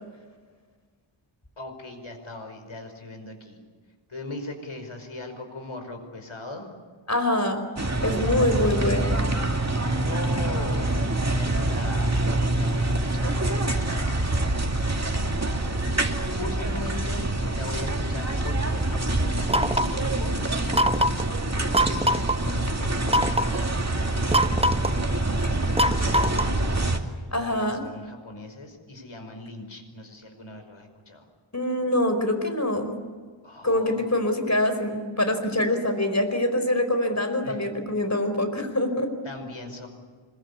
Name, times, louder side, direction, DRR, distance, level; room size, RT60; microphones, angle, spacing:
voice 1, 1.6-3.6 4.1-6.7 9.8-14.1 16.4-20.4 21.8-23.7 24.1-26.8 27.4-31.3 33.4-34.0 37.4-37.6 39.2-39.9, left 2 dB, 70° left, 5 dB, 5.4 m, -39 dB
voice 2, 7.1-7.7 8.0-9.2 27.3-27.8 31.5-32.9 33.6-39.1, left 1 dB, 35° left, 7 dB, 4.9 m, -24 dB
sound 1, 7.8-27.0, right 2 dB, 30° right, 2.5 m, -26 dB
sound 2, 19.5-20.0 20.7-21.3 21.7-22.4 23.1-23.6 24.3-25.0 25.8-26.6, equal, 10° right, 0.9 m, -23 dB
25.5 x 23.0 x 8.5 m, 1.6 s
wide cardioid pair, 60°, 50 cm